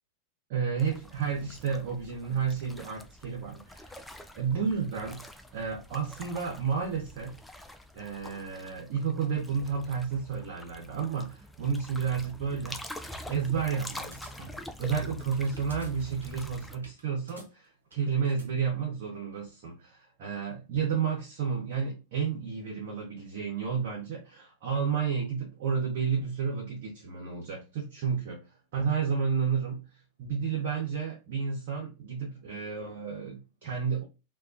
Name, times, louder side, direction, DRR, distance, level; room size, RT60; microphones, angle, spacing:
voice 1, 0.5-7.3 7.9-12.8 13.3-14.5 14.8-28.4 28.7-29.8 30.2-34.0, right 6 dB, 60° right, 0.8 m, -31 dB
sound 1, 0.8-16.8, left 1 dB, 5° left, 0.3 m, -45 dB
sound 2, 13.0-18.5, right 1 dB, 90° right, 0.8 m, -54 dB
2.3 x 2.2 x 2.5 m
hypercardioid pair, 95°, 0 cm